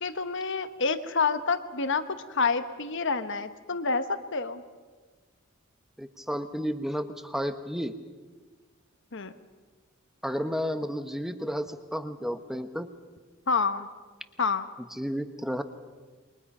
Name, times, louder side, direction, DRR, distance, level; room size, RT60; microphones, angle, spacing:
voice 1, 0.0-2.0 2.3-4.6 9.1-9.3 13.5-13.9 14.4-14.7, left 4 dB, 60° left, 10 dB, 1.2 m, -28 dB
voice 2, 6.0-8.0 10.2-12.9 15.0-15.6, equal, ahead, 9 dB, 1.1 m, -32 dB
28.5 x 23.0 x 5.6 m, 1.4 s
head